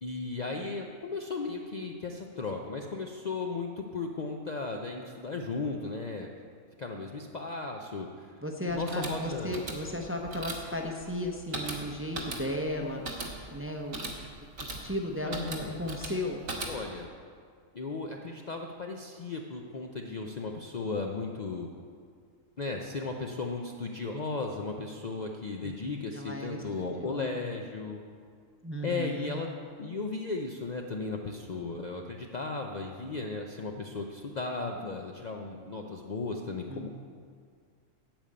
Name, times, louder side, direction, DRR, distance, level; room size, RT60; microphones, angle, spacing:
voice 1, 0.0-6.3 6.8-8.3 8.7-9.6 15.2-15.8 16.7-17.1 17.7-21.7 22.6-28.0 28.8-29.5 29.8-36.9, left 3 dB, 45° left, 1 dB, 0.6 m, -35 dB
voice 2, 8.4-14.1 14.6-16.4 25.6-27.4 28.6-29.4 36.7-36.9, left 1 dB, 15° right, 2 dB, 0.6 m, -35 dB
sound 1, 8.7-17.1, right 2 dB, 80° right, 1.9 m, -40 dB
9.0 x 6.7 x 8.6 m, 2.1 s
omnidirectional pair, 1.4 m